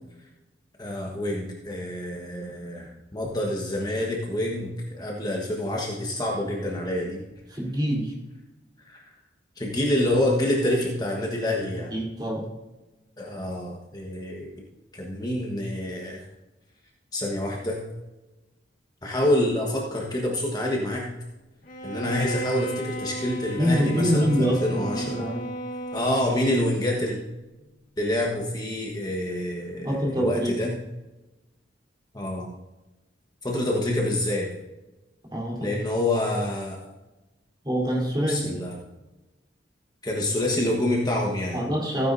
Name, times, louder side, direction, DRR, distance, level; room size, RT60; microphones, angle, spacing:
voice 1, 0.8-7.2 8.8-9.0 9.6-11.9 13.2-14.5 14.9-16.3 17.1-17.8 19.0-21.1 21.8-25.2 25.9-27.2 28.0-30.7 32.1-32.5 33.4-34.5 35.6-36.8 38.3-38.8 40.0-41.6, left 1 dB, 20° left, -2 dB, 1.3 m, -27 dB
voice 2, 7.5-8.1 11.9-12.5 22.1-22.2 23.6-25.5 29.8-30.7 35.3-35.8 37.6-38.6 41.5-42.1, equal, 25° right, -3 dB, 3.5 m, -25 dB
Bowed string instrument, 21.7-26.8, right 1 dB, 50° left, 1.5 m, -34 dB
15.5 x 9.7 x 2.7 m, 1.1 s
head